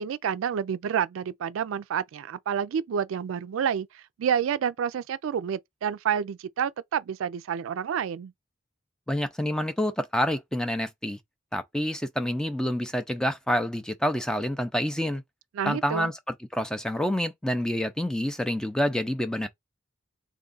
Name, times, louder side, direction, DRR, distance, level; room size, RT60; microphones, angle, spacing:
voice 1, 0.0-8.3 15.5-16.1, right 8 dB, 85° right, 0.3 m, -29 dB
voice 2, 9.1-11.2 11.5-15.2 15.6-16.2 16.5-19.5, equal, 5° left, 0.4 m, -27 dB
3.5 x 2.3 x 3.8 m
head